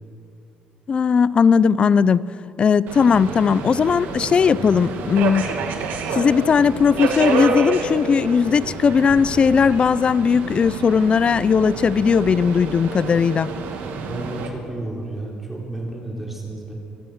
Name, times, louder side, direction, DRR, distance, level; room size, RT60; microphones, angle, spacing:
voice 1, 0.9-2.2 2.6-5.6 6.1-13.5, left 6 dB, 35° left, 18 dB, 0.5 m, -18 dB
Subway metro underground, 2.9-14.5, right 4 dB, 85° right, 2.4 m, -28 dB
voice 2, 13.9-16.7, right 2 dB, 5° right, -2 dB, 3.7 m, -32 dB
25.0 x 16.0 x 6.5 m, 2.5 s
cardioid pair, 130°, 3 cm